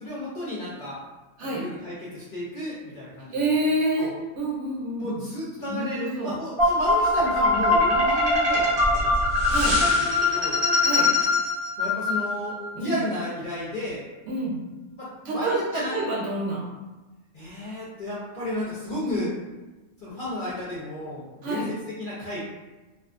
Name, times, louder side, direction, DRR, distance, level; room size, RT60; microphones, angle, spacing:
voice 1, 0.0-1.0 1.4-3.4 4.0-4.1 5.0-9.2 9.6-10.6 11.8-14.0 15.0-16.0 17.3-19.3 20.0-22.4, left 1 dB, 55° left, -8 dB, 0.6 m, -33 dB
voice 2, 3.3-5.1 5.7-6.3 9.5-9.8 10.8-11.1 12.8-13.0 14.3-14.6 15.2-15.6 15.9-16.6 19.0-19.2 21.4-21.7, right 2 dB, 65° right, -3 dB, 0.8 m, -27 dB
sound 1, 6.6-12.7, left 2 dB, 50° right, 0.4 m, -22 dB
2.4 x 2.3 x 2.4 m, 1.2 s
omnidirectional pair, 1.4 m